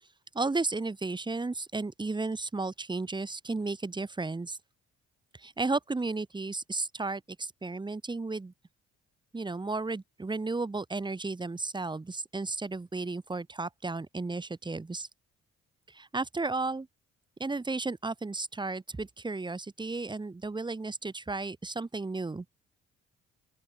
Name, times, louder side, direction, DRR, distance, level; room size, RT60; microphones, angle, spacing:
voice 1, 0.3-4.6 5.4-8.5 9.3-15.1 15.9-16.9 17.4-22.4, right 3 dB, 15° right, 0.8 m, -33 dB
open air
hypercardioid pair, 45°, 34 cm